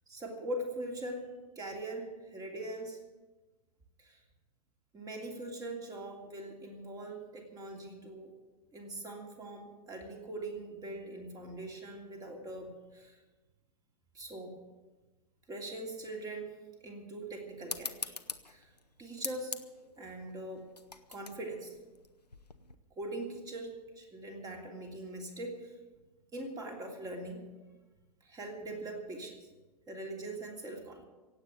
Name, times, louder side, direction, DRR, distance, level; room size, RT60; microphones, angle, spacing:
voice 1, 0.1-3.0 4.0-4.2 4.9-8.3 8.7-13.2 14.1-14.5 15.5-16.5 16.8-18.2 18.5-18.7 19.0-19.5 20.0-20.7 21.1-21.8 23.0-25.7 26.3-27.4 28.2-29.5 29.9-31.0, right 1 dB, 20° right, 2 dB, 3.0 m, -42 dB
sound 1, 17.7-22.7, left 3 dB, 85° left, 1.0 m, -43 dB
17.0 x 8.4 x 9.3 m, 1.2 s
figure-of-eight pair, 100°, 20 cm